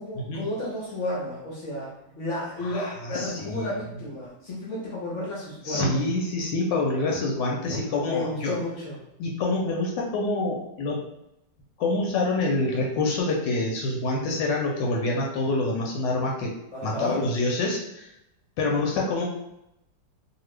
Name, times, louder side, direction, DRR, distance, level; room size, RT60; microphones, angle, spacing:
voice 1, 0.0-6.0 8.0-9.0 16.7-17.2, left 1 dB, 60° left, -5 dB, 0.8 m, -32 dB
voice 2, 2.6-3.7 5.6-8.6 9.2-11.0 11.8-16.5 16.8-18.1 18.6-19.2, left 2 dB, 80° left, -1 dB, 1.2 m, -26 dB
2.8 x 2.4 x 3.1 m, 0.85 s
omnidirectional pair, 2.0 m